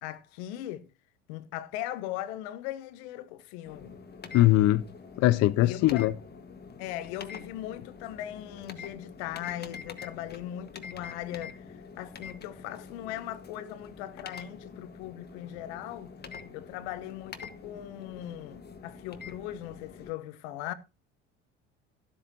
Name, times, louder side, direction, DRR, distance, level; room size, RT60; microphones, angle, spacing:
voice 1, 0.0-0.9 1.3-4.0 5.6-6.1 6.8-16.1 16.5-20.7, left 13 dB, 65° left, 1.2 m, -39 dB
sound 1, 3.7-20.1, left 5 dB, 25° left, 1.6 m, -46 dB
voice 2, 4.3-4.8 5.2-6.1, left 15 dB, 45° left, 0.6 m, -21 dB
13.0 x 12.5 x 2.8 m
hypercardioid pair, 70°, 36 cm